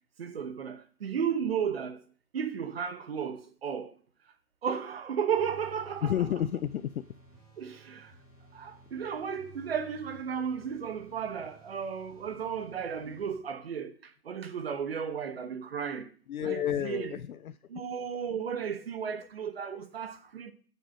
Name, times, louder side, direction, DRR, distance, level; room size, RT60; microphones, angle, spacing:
voice 1, 0.2-2.0 2.3-3.9 4.6-6.1 7.6-8.1 8.5-13.9 14.3-16.1 16.4-17.1 17.7-20.5, right 7 dB, 40° right, 1.1 m, -34 dB
sound 1, 5.3-13.4, right 2 dB, 5° right, 1.4 m, -55 dB
voice 2, 6.0-7.1 16.3-17.6, left 10 dB, 70° left, 0.6 m, -31 dB
8.7 x 6.8 x 6.4 m
hypercardioid pair, 170°, 45 cm